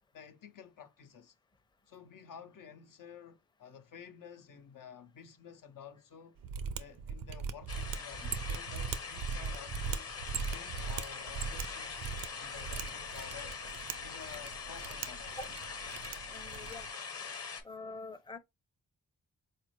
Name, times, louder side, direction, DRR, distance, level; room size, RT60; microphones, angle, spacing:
voice 1, 0.1-1.3 1.9-6.4 6.8-10.1 10.5-13.6 14.0-15.5, left 7 dB, 70° left, 0.7 m, -52 dB
Mechanisms, 6.4-16.9, right 6 dB, 80° right, 0.5 m, -40 dB
sound 1, 7.7-17.6, left 5 dB, 45° left, 1.0 m, -43 dB
voice 2, 16.3-16.9 17.6-18.4, left 4 dB, 15° left, 0.5 m, -45 dB
4.0 x 2.4 x 3.1 m
cardioid pair, 50°, 33 cm